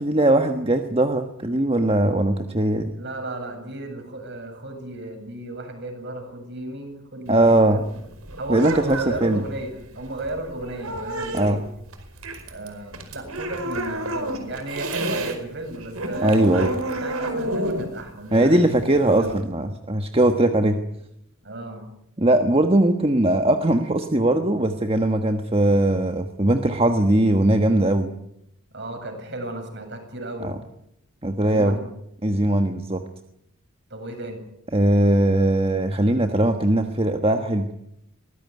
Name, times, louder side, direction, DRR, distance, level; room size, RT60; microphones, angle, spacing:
voice 1, 0.0-2.9 7.3-7.8 8.5-9.4 11.3-11.6 16.2-16.7 18.3-20.8 22.2-28.1 30.4-30.5 31.2-31.8 32.2-33.0 34.7-37.7, right 1 dB, 25° right, 6 dB, 1.3 m, -20 dB
voice 2, 2.9-8.0 8.4-11.6 12.5-19.4 21.4-21.9 28.7-30.5 31.4-31.8 33.9-34.4, right 2 dB, 50° right, 5 dB, 7.9 m, -34 dB
sound 1, 7.3-15.4 15.7-19.4, right 1 dB, 80° right, 4.9 m, -30 dB
23.0 x 20.0 x 9.5 m, 0.80 s
head